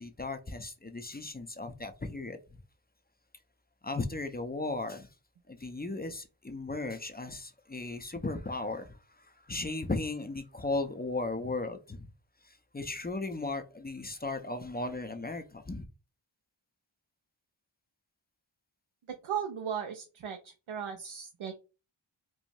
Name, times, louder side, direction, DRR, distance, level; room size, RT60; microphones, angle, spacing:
voice 1, 0.0-2.6 3.8-5.1 5.5-12.1 12.4-15.9, left 2 dB, 20° left, 0.4 m, -36 dB
voice 2, 19.2-20.4 20.7-21.6, right 8 dB, 80° right, 0.6 m, -36 dB
4.6 x 2.0 x 2.6 m
wide cardioid pair, 50°, 48 cm